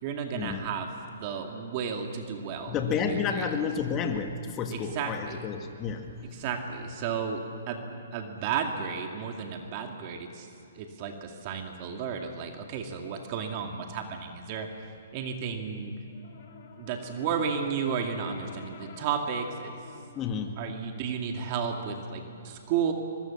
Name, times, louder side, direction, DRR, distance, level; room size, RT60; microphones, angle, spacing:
voice 1, 0.0-3.5 4.7-5.5 6.3-10.5 10.7-15.9 16.8-19.8 20.6-22.9, right 6 dB, 40° right, 3 dB, 2.2 m, -33 dB
voice 2, 2.7-6.2 20.2-20.6, left 6 dB, 25° left, 4 dB, 1.7 m, -31 dB
Brass instrument, 16.0-20.2, left 6 dB, 55° left, 2.7 m, -49 dB
24.0 x 21.5 x 7.2 m, 2.7 s
hypercardioid pair, 140°, 0 cm